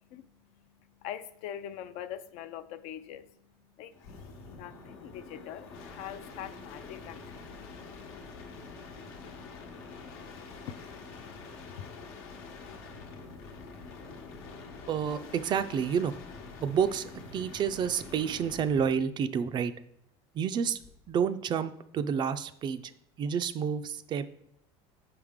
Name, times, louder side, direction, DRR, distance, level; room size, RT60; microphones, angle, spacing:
voice 1, 1.0-3.3 3.8-3.9 4.5-7.5 7.8-7.9 10.7-10.8 11.8-11.9, left 10 dB, 70° left, 0.4 m, -42 dB
sound 1, 3.9-19.0 20.8-21.2, left 4 dB, 90° left, 1.0 m, -46 dB
voice 2, 14.9-16.1 16.6-19.7 20.3-20.8 21.1-22.8 23.2-24.3, right 7 dB, 35° right, 0.3 m, -29 dB
5.4 x 4.9 x 3.6 m
supercardioid pair, 120°, 13 cm